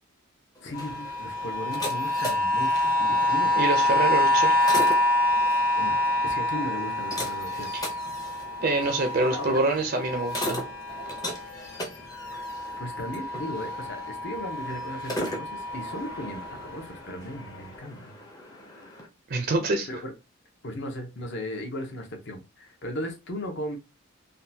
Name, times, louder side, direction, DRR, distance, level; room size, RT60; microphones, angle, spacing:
sound 1, 0.5-19.1, left 1 dB, 15° left, 0.6 m, -39 dB
voice 1, 0.6-3.5 5.7-6.0 6.2-7.7 9.2-9.6 12.3-12.5 12.8-18.2 19.9-20.1 20.6-23.8, left 1 dB, 55° left, 0.8 m, -36 dB
sound 2, 0.7-11.8 12.1-16.7 17.4-17.5, left 1 dB, 70° left, 1.5 m, -27 dB
voice 2, 3.5-4.6 7.7-7.8 8.6-10.6 19.3-19.9, right 2 dB, 45° right, 0.4 m, -26 dB
3.6 x 2.2 x 2.7 m
head